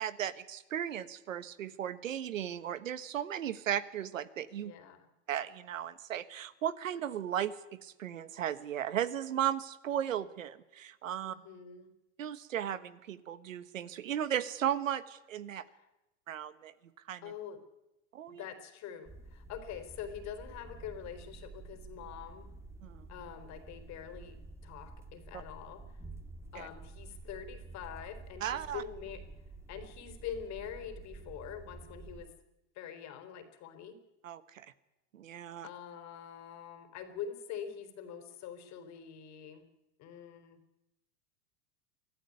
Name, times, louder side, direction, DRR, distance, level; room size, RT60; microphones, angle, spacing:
voice 1, 0.0-4.7 5.3-11.4 12.2-15.6 16.3-16.7 17.1-17.2 18.1-18.4 22.8-23.1 26.5-26.7 28.4-28.8 34.2-34.7 35.1-35.7, right 10 dB, 85° right, 14 dB, 1.4 m, -36 dB
voice 2, 4.6-5.1 11.2-11.9 15.6-15.9 17.2-17.6 18.3-22.5 23.1-24.4 24.6-25.8 26.5-29.2 29.7-32.3 32.7-34.0 35.6-39.7 40.0-40.6, left 8 dB, 45° left, 9 dB, 3.9 m, -45 dB
sound 1, 19.0-32.3, right 3 dB, 5° right, 2.5 m, -50 dB
24.0 x 14.5 x 9.6 m, 0.97 s
hypercardioid pair, 105°, 38 cm